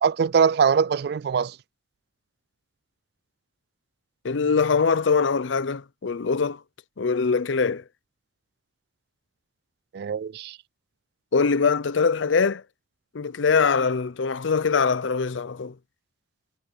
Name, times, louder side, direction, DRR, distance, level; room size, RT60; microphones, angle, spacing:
voice 1, 0.0-1.6 9.9-10.6, right 6 dB, 55° right, 0.3 m, -22 dB
voice 2, 4.2-6.6 7.0-7.8 11.3-12.6 13.1-15.8, left 5 dB, 75° left, 0.6 m, -23 dB
head